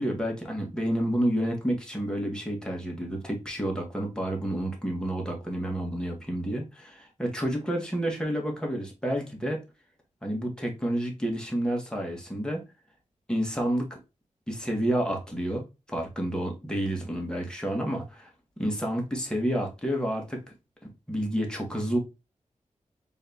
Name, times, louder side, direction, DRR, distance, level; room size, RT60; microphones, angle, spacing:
voice 1, 0.0-9.6 10.2-12.6 13.3-14.0 14.5-18.3 18.6-20.4 20.8-22.0, right 1 dB, 5° left, 1.9 m, -30 dB
4.6 x 3.5 x 2.9 m
cardioid pair, 60°, 13 cm